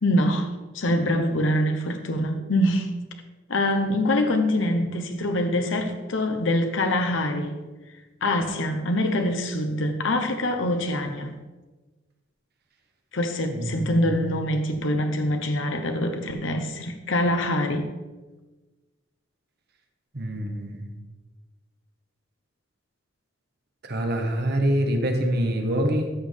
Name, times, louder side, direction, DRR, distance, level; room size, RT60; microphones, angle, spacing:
voice 1, 0.0-2.9 3.5-7.6 8.2-11.3 13.1-17.9, left 1 dB, 70° left, 0.9 m, -24 dB
voice 2, 13.5-14.0 20.1-20.9 23.8-26.1, right 1 dB, 55° right, 1.3 m, -25 dB
13.5 x 6.4 x 3.4 m
head